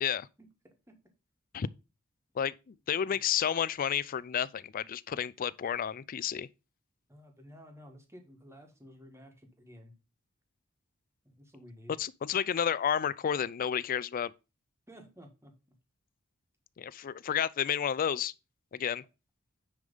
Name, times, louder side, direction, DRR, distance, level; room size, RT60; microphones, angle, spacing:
voice 1, 2.4-6.5 12.0-14.3 16.8-18.3 18.7-19.0, left 8 dB, 45° left, 0.4 m, -31 dB
voice 2, 7.1-9.9 11.2-11.9 14.9-15.5, equal, 15° right, 1.5 m, -53 dB
9.7 x 3.4 x 5.3 m
head